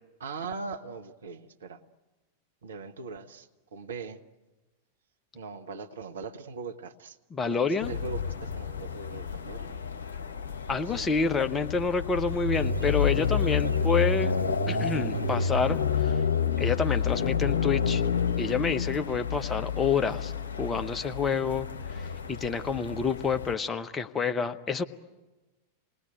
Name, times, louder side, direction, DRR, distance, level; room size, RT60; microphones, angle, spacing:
voice 1, 0.2-1.8 2.6-4.2 5.3-7.2 7.4-9.9 10.7-11.1, right 4 dB, 65° right, 1.1 m, -40 dB
voice 2, 7.3-7.9 10.7-14.3 14.7-16.1 16.6-18.0 18.4-20.3 20.6-24.8, left 5 dB, 20° left, 0.9 m, -28 dB
sound 1, 7.8-23.5, left 6 dB, 65° left, 1.4 m, -29 dB
sound 2, 12.5-17.4, equal, 90° left, 0.9 m, -44 dB
27.5 x 19.5 x 9.2 m
figure-of-eight pair, 90°, 0 cm